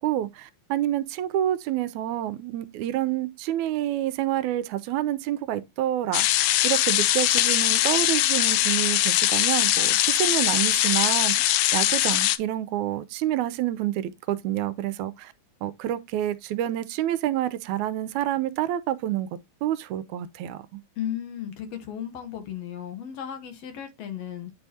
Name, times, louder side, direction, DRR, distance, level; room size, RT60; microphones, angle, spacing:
voice 1, 0.0-15.3 15.6-19.3 19.6-20.8, right 12 dB, 80° right, 2.0 m, -28 dB
sound 1, 6.1-12.4, left 14 dB, 85° left, 1.4 m, -22 dB
voice 2, 21.0-24.5, left 10 dB, 65° left, 2.0 m, -35 dB
9.3 x 4.5 x 2.8 m
omnidirectional pair, 3.4 m